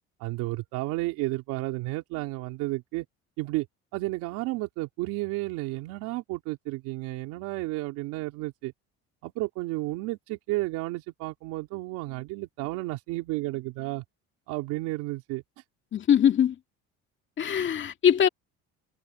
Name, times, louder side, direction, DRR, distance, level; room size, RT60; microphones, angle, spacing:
voice 1, 0.2-3.0 3.4-3.7 3.9-8.7 9.2-14.0 14.5-15.6, right 20 dB, 80° right, 3.3 m, -32 dB
voice 2, 15.9-16.6 17.4-18.3, left 9 dB, 40° left, 2.0 m, -22 dB
cardioid pair, 115°, 30 cm